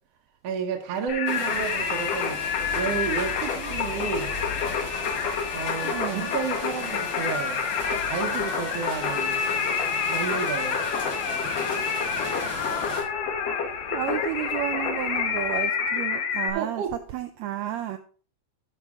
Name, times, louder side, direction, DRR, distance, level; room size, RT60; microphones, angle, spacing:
voice 1, 0.4-4.3 5.5-9.4 10.1-10.9 16.5-17.0, right 7 dB, 60° right, 1.9 m, -31 dB
Singing, 1.1-16.5, left 6 dB, 60° left, 2.1 m, -28 dB
sound 1, 1.3-13.0, left 2 dB, 85° left, 5.5 m, -37 dB
sound 2, 1.5-15.6, left 3 dB, 35° left, 1.8 m, -45 dB
voice 2, 5.8-6.3 13.9-16.8 17.1-18.0, right 13 dB, 80° right, 1.6 m, -32 dB
12.5 x 6.0 x 3.6 m
omnidirectional pair, 3.7 m